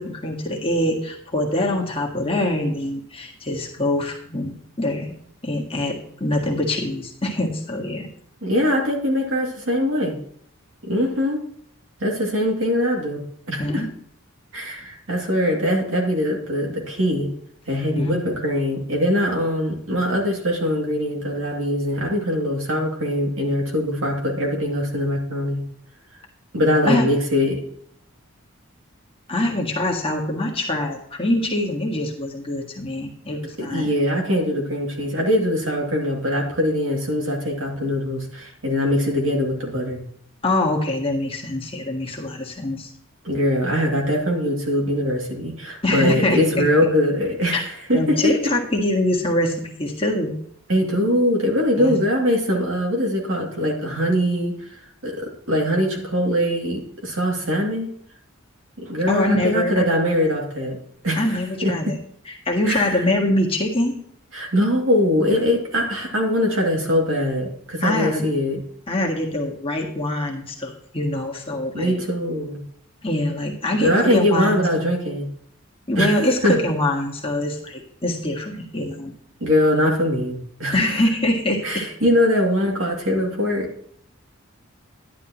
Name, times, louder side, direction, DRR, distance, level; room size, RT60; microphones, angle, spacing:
voice 1, 0.0-5.1 5.4-8.1 13.6-13.9 18.0-18.2 26.8-27.1 29.3-33.9 40.4-42.9 45.8-46.7 47.5-47.6 47.9-50.3 51.7-52.0 59.1-59.9 61.2-62.0 62.3-64.0 67.8-68.2 68.9-72.0 73.0-74.6 75.9-79.1 80.7-81.9, left 1 dB, 25° left, -1 dB, 1.7 m, -24 dB
voice 2, 8.4-10.2 10.9-11.4 12.0-13.2 13.5-13.9 14.5-17.3 17.7-25.6 26.5-27.6 33.6-40.0 43.2-48.3 50.7-57.9 58.8-60.8 61.0-61.2 61.6-61.7 62.7-62.9 64.3-68.6 71.7-72.6 73.8-75.3 76.0-76.1 76.4-76.6 79.4-80.7 81.6-83.7, left 1 dB, 65° right, 0 dB, 2.5 m, -22 dB
11.5 x 10.5 x 3.0 m, 0.66 s
head